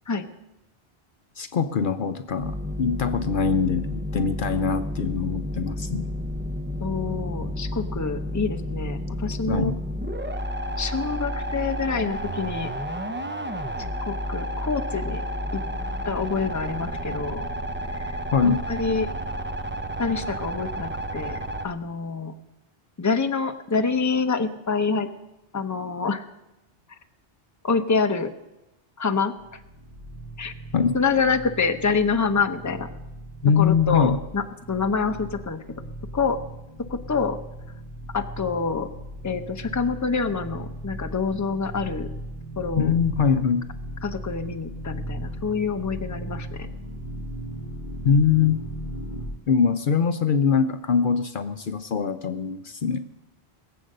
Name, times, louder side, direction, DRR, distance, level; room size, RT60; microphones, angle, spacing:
voice 1, 1.4-6.1 9.5-9.7 18.3-18.6 30.7-31.0 33.4-34.2 42.8-43.7 48.0-48.6 49.5-53.0, left 6 dB, 60° left, 9 dB, 0.8 m, -23 dB
sound 1, 2.4-21.7, equal, 15° right, 0.6 m, -31 dB
voice 2, 6.8-9.7 10.8-12.7 14.0-15.2 15.5-15.6 16.0-17.4 17.9-18.2 18.4-19.1 20.0-22.3 23.0-25.1 25.5-26.2 27.6-28.3 29.0-29.6 30.4-30.5 30.9-32.9 33.6-34.4 34.7-35.6 36.1-36.4 36.9-37.4 38.1-38.9 39.2-42.1 42.6-42.9 44.0-46.7, left 5 dB, 20° left, 7 dB, 0.7 m, -26 dB
sound 2, 29.4-49.3, right 1 dB, 35° right, 4.8 m, -37 dB
20.5 x 7.8 x 6.6 m, 0.94 s
omnidirectional pair, 1.0 m